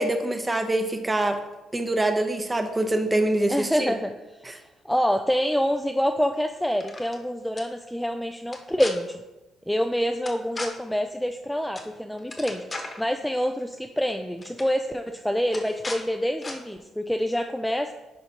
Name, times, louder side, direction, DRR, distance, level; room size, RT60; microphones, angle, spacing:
voice 1, 0.0-1.4 1.7-3.9 4.5-4.6, right 1 dB, 15° right, 6 dB, 0.8 m, -24 dB
voice 2, 3.5-4.4 4.8-9.2 9.7-17.9, equal, 5° left, 6 dB, 0.4 m, -26 dB
sound 1, 6.7-7.2 7.6-7.7 8.5-8.9 10.3-10.7 11.8-11.9 12.2-13.0 14.0-14.1 14.4-14.7 15.5-16.0 16.4-16.6, left 2 dB, 25° left, 1.2 m, -36 dB
10.5 x 5.0 x 2.9 m, 1.1 s
cardioid pair, 95°, 0 cm